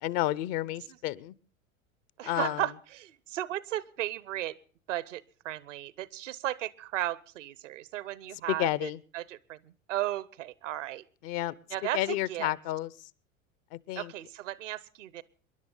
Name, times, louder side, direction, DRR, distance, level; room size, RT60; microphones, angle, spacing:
voice 1, 0.0-1.3 2.3-2.6 8.5-9.0 11.2-11.6 11.9-12.9 13.7-14.1, left 15 dB, 45° left, 21 dB, 0.8 m, -30 dB
voice 2, 2.2-4.6 4.9-11.0 11.7-12.5 14.0-15.2, right 14 dB, 65° right, 20 dB, 0.9 m, -35 dB
26.5 x 11.0 x 3.8 m, 0.41 s
figure-of-eight pair, 80°, 40 cm